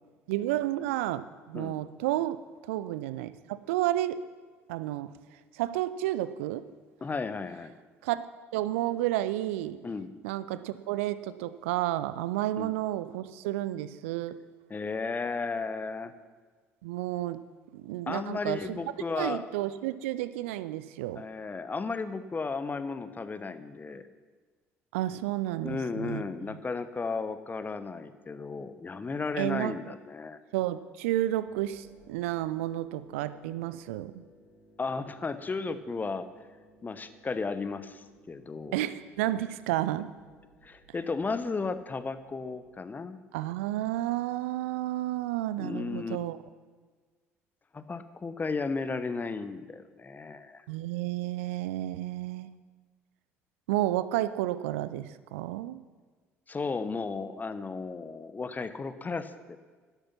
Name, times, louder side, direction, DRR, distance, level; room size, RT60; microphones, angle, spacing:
voice 1, 0.3-4.2 4.7-5.1 5.5-6.6 8.0-8.2 8.5-9.8 10.2-14.4 16.8-17.4 17.7-18.8 19.2-21.2 24.9-26.2 26.5-26.6 29.4-29.8 30.5-34.2 38.7-40.1 43.3-46.4 50.7-52.5 53.7-55.8, right 14 dB, 70° right, 15 dB, 0.6 m, -31 dB
voice 2, 7.0-7.7 9.8-10.1 12.6-12.7 14.7-16.1 18.1-19.4 21.2-24.0 25.6-30.4 34.8-36.3 36.8-38.8 40.6-43.2 45.6-46.2 47.7-50.6 56.5-59.6, left 4 dB, 25° left, 12 dB, 1.0 m, -34 dB
sound 1, 31.4-42.7, left 1 dB, 80° left, 3.3 m, -60 dB
12.0 x 11.5 x 5.9 m, 1.4 s
figure-of-eight pair, 55°, 7 cm